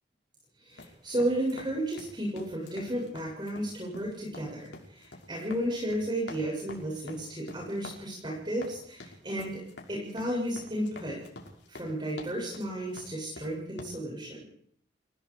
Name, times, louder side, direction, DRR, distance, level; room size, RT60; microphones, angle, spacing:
voice 1, 0.6-9.6 9.9-11.2 11.7-14.5, right 1 dB, 25° right, -2 dB, 7.4 m, -33 dB
sound 1, 0.7-13.8, left 2 dB, 85° left, 5.9 m, -48 dB
30.0 x 17.5 x 5.0 m, 0.64 s
head